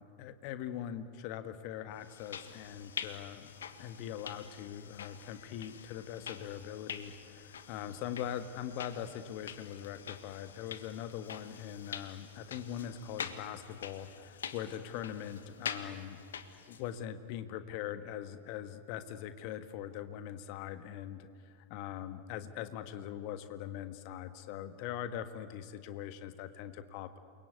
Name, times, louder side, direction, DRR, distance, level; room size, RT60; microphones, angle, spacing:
voice 1, 0.0-3.5 3.8-16.2 16.7-27.2, left 10 dB, 45° left, 10 dB, 1.5 m, -42 dB
sound 1, 2.0-17.0, left 7 dB, 65° left, 1.5 m, -46 dB
28.5 x 23.0 x 8.4 m, 2.3 s
figure-of-eight pair, 90°, 0 cm